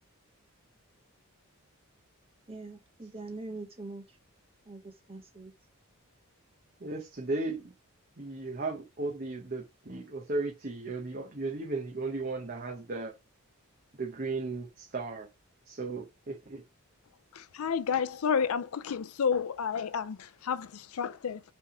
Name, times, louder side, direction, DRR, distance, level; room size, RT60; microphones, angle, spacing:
voice 1, 2.5-4.0 4.7-4.8 5.1-5.5, right 2 dB, 25° right, 1.4 m, -42 dB
voice 2, 6.8-7.7 8.2-13.1 14.0-15.3 15.7-16.6, right 3 dB, 40° right, 0.9 m, -35 dB
voice 3, 17.3-21.4, left 6 dB, 75° left, 0.5 m, -31 dB
5.6 x 3.5 x 4.9 m
head